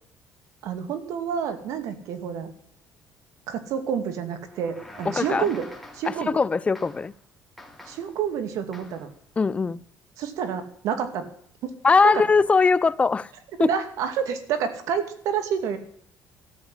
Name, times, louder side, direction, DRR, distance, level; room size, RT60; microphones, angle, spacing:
voice 1, 0.6-2.5 3.5-5.7 5.9-6.3 7.9-9.1 10.2-11.3 11.6-11.7 13.6-15.8, right 7 dB, 75° right, 2.4 m, -28 dB
sound 1, 4.5-6.5 6.7-7.2 7.6-8.2 8.7-9.1, left 1 dB, ahead, 2.6 m, -45 dB
voice 2, 5.1-5.5 6.1-7.1 9.4-9.8 11.8-13.3 13.6-13.7, left 4 dB, 20° left, 0.6 m, -20 dB
13.5 x 8.3 x 9.8 m
cardioid pair, 115°, 6 cm